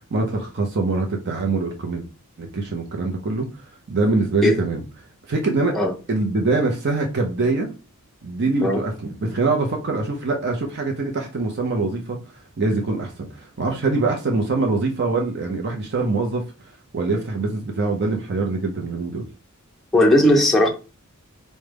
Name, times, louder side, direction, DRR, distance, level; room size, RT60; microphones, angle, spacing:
voice 1, 0.1-2.0 2.4-3.5 3.9-4.8 5.3-5.7 6.1-7.7 8.2-12.2 12.6-16.4 16.9-19.2, right 3 dB, 50° right, 0.6 m, -23 dB
voice 2, 19.9-20.7, left 1 dB, ahead, 0.5 m, -16 dB
4.7 x 2.1 x 3.3 m
head